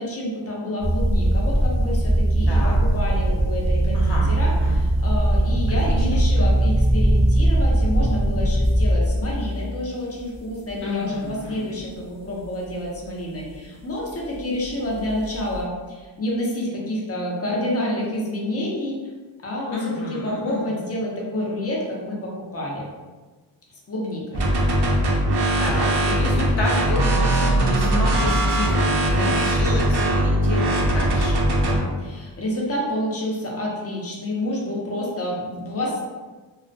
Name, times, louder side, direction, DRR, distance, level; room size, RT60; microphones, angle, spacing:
voice 1, 0.0-19.1 19.4-22.8 23.9-24.9 25.2-25.9 29.1-29.8 31.6-36.1, left 1 dB, 30° left, -3 dB, 0.7 m, -29 dB
sound 1, 0.8-9.6 10.3-10.7 11.3-11.4 14.9-15.6, right 1 dB, 10° right, 0.7 m, -20 dB
voice 2, 2.5-2.8 3.9-4.8 5.7-6.5 10.8-11.7 19.7-20.6 25.6-31.4, left 2 dB, 70° left, -3 dB, 0.6 m, -30 dB
sound 2, 24.3-31.8, right 1 dB, 60° right, 0.6 m, -20 dB
2.3 x 2.1 x 2.6 m, 1.3 s
cardioid pair, 45°, 47 cm